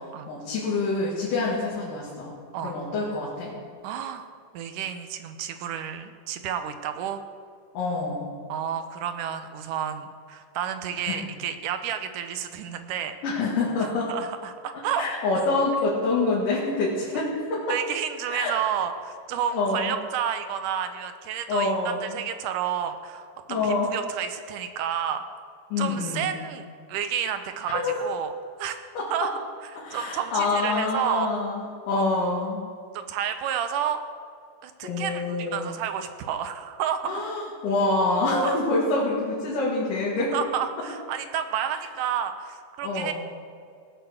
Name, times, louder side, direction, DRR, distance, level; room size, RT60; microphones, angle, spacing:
voice 1, 0.3-2.3 2.6-3.5 7.7-8.3 11.1-11.2 13.2-14.1 15.0-17.6 18.3-18.5 19.5-19.9 21.5-22.2 23.5-23.9 25.7-26.4 27.7-28.1 29.0-29.3 29.8-32.6 34.8-35.7 37.0-40.3 42.8-43.1, left 3 dB, 85° left, -6 dB, 3.5 m, -26 dB
voice 2, 3.8-4.3 4.5-7.2 8.5-13.2 14.1-15.1 17.7-25.2 25.8-28.3 28.6-28.8 29.1-29.3 29.6-31.3 31.9-32.0 32.9-34.0 34.6-37.3 38.4-38.6 40.3-43.1, right 9 dB, 80° right, 8 dB, 2.3 m, -30 dB
18.0 x 7.2 x 6.5 m, 2.3 s
omnidirectional pair, 3.7 m